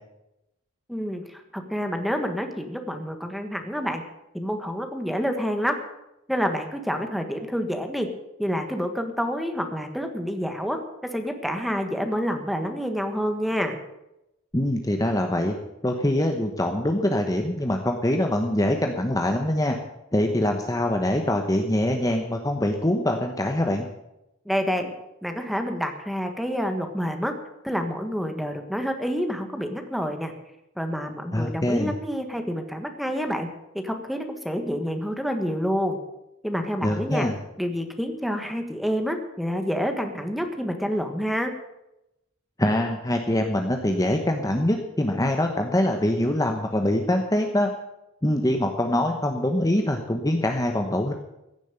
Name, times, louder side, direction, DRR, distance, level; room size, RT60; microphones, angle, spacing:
voice 1, 0.9-4.0 4.3-5.8 6.3-8.1 8.4-13.8 24.4-24.9 25.2-27.3 27.6-30.3 30.8-33.5 33.7-36.0 36.4-37.3 37.6-41.5, equal, ahead, 6 dB, 1.4 m, -28 dB
voice 2, 14.5-15.5 15.8-19.8 20.1-23.9 31.3-31.9 36.8-37.3 42.6-47.7 48.2-51.1, left 1 dB, 15° left, 4 dB, 1.0 m, -24 dB
15.5 x 7.3 x 8.9 m, 0.89 s
head